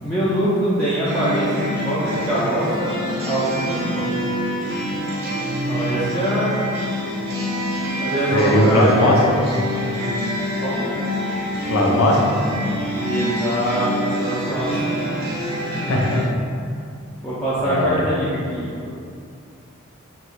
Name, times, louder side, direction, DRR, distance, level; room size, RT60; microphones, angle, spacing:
voice 1, 0.0-3.0 3.3-4.0 5.7-6.5 8.0-9.2 10.6-10.9 12.9-15.0 17.2-18.9, right 1 dB, 5° left, -13 dB, 0.4 m, -23 dB
sound 1, 1.0-16.2, equal, 50° right, 0.6 m, -26 dB
voice 2, 8.3-9.2 11.7-12.4 15.9-16.2 17.6-18.0, left 1 dB, 90° left, -1 dB, 0.5 m, -18 dB
2.9 x 2.3 x 3.0 m, 2.4 s
head